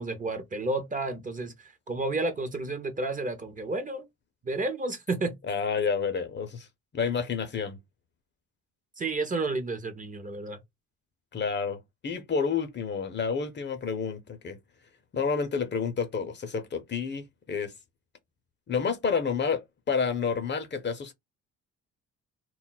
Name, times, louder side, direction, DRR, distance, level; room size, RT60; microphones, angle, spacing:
voice 1, 0.0-4.0 4.4-5.3 9.0-10.6, right 2 dB, 25° right, 0.6 m, -31 dB
voice 2, 5.5-6.7 6.9-7.8 11.3-14.6 15.1-17.7 18.7-21.1, left 5 dB, 35° left, 0.6 m, -29 dB
2.2 x 2.0 x 3.8 m
cardioid pair, 90°, 30 cm